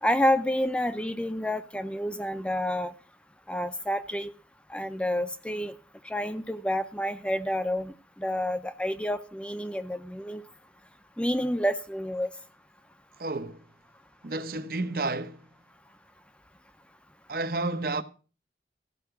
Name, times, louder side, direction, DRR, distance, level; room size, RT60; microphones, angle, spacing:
voice 1, 0.0-2.9 3.5-4.3 4.7-5.7 6.0-10.4 11.2-12.3, equal, 5° left, 0.6 m, -29 dB
voice 2, 13.2-13.6 14.2-15.5 17.3-18.0, right 2 dB, 55° right, 0.9 m, -31 dB
14.5 x 5.7 x 7.9 m
head